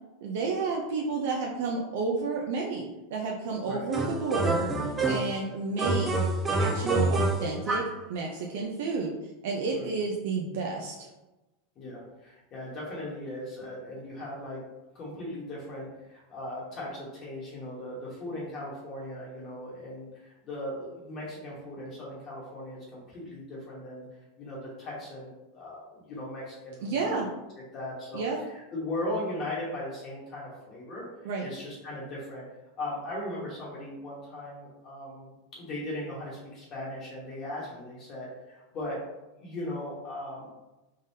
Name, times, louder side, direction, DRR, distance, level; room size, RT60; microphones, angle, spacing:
voice 1, 0.2-4.7 5.1-6.3 6.5-9.1 9.4-11.1 26.8-27.3 28.1-28.4 31.2-31.5, right 4 dB, 65° right, -1 dB, 0.5 m, -31 dB
sound 1, 3.9-5.4 5.8-8.0, right 2 dB, 15° right, 0.4 m, -27 dB
voice 2, 11.8-14.6 14.9-24.1 24.4-27.2 27.7-28.2 28.5-32.5 32.8-39.0 39.4-40.6, left 1 dB, 30° left, -5 dB, 1.1 m, -38 dB
3.6 x 3.5 x 2.7 m, 1.0 s
supercardioid pair, 155°, 0 cm